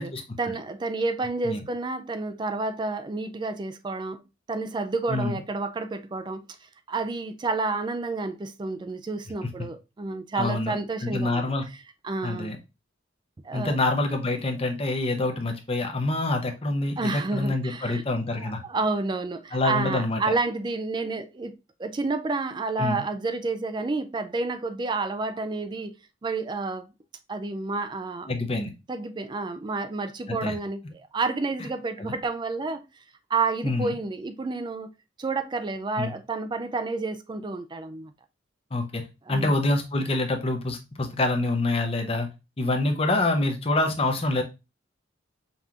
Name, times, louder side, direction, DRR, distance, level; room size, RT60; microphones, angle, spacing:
voice 1, 0.4-6.5 6.9-11.4 12.0-12.5 13.4-13.8 14.3-14.4 17.0-18.0 18.4-25.9 26.2-26.9 27.3-28.3 28.9-30.8 31.1-32.8 33.3-34.9 35.2-38.1 39.3-39.5, right 3 dB, 25° right, 0.3 m, -30 dB
voice 2, 5.1-5.4 10.4-10.8 11.0-11.6 12.2-12.6 13.5-18.6 19.5-20.2 22.8-23.0 28.3-28.7 30.3-30.6 32.0-32.1 33.6-33.9 36.0-36.1 38.7-39.0 39.3-42.3 42.6-44.4, left 2 dB, 30° left, 0.7 m, -26 dB
5.4 x 2.9 x 2.4 m
head